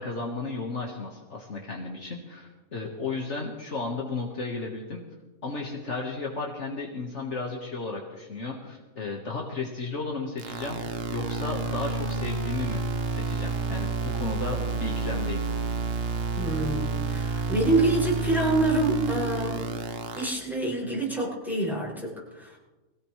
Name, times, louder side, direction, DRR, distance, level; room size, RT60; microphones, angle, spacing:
voice 1, 0.0-5.0 5.4-12.8 13.1-15.4, left 3 dB, 55° left, -1 dB, 1.9 m, -34 dB
sound 1, 10.4-20.3, right 3 dB, 50° right, 1.2 m, -30 dB
voice 2, 16.3-19.7 20.1-22.6, right 2 dB, ahead, -5 dB, 6.6 m, -27 dB
22.5 x 17.0 x 3.3 m, 1.1 s
omnidirectional pair, 1.4 m